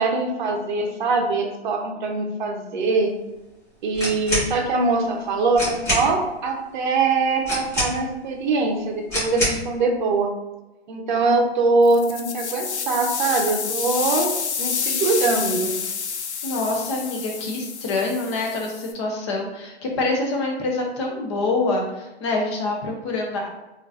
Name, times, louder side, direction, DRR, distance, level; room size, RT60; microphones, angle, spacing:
voice 1, 0.0-3.1 3.8-10.3 10.9-14.3 14.6-15.8, right 3 dB, 45° right, 2 dB, 0.7 m, -22 dB
sound 1, 3.9-4.5 5.2-5.3 5.5-6.1 7.4-8.2 9.1-9.7, equal, 10° left, 1.1 m, -25 dB
sound 2, 11.8-18.9, left 6 dB, 85° left, 0.6 m, -29 dB
voice 2, 16.4-23.5, left 2 dB, 25° left, 1 dB, 0.5 m, -26 dB
3.7 x 2.5 x 2.4 m, 1.0 s
hypercardioid pair, 145°, 33 cm